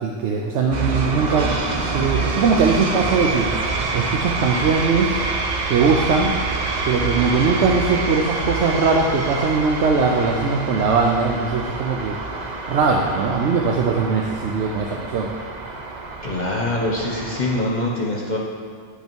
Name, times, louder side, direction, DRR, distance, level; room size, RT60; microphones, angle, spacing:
voice 1, 0.0-3.5 3.9-5.1 5.7-6.3 6.8-12.2 12.7-15.3, right 4 dB, 85° right, 1 dB, 1.0 m, -20 dB
sound 1, 0.7-17.6, right 3 dB, 45° right, 0.7 m, -27 dB
voice 2, 16.2-18.4, left 1 dB, 45° left, -2 dB, 0.9 m, -24 dB
10.0 x 5.4 x 4.5 m, 2.1 s
omnidirectional pair, 1.1 m